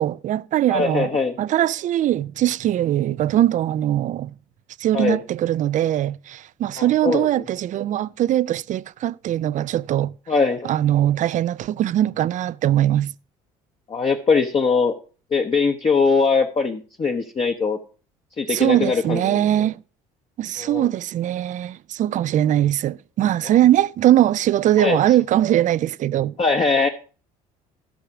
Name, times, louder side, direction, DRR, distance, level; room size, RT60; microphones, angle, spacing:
voice 1, 0.0-1.1 1.4-4.3 4.8-10.1 10.6-13.1 18.5-19.8 20.4-26.3, right 12 dB, 45° right, 0.4 m, -21 dB
voice 2, 0.7-1.3 4.9-5.2 6.8-7.3 10.3-10.7 13.9-15.0 15.3-17.8 18.4-19.4 20.6-20.9 23.4-23.5 24.8-25.0 26.4-26.9, left 4 dB, 30° left, 1.0 m, -21 dB
13.0 x 5.9 x 4.8 m
hypercardioid pair, 70°, 18 cm